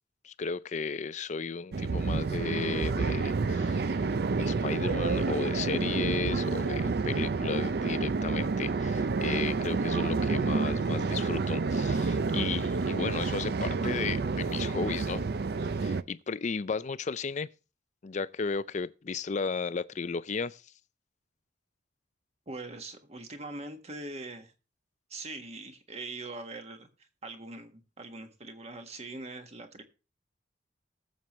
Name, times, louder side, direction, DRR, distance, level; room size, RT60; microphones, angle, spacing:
voice 1, 0.2-15.3 15.8-17.5 18.0-20.6, left 5 dB, 40° left, 0.4 m, -34 dB
sound 1, 1.7-16.0, right 4 dB, 65° right, 0.5 m, -29 dB
voice 2, 22.5-24.5 25.1-29.8, right 2 dB, 40° right, 1.5 m, -42 dB
19.5 x 7.4 x 3.1 m
head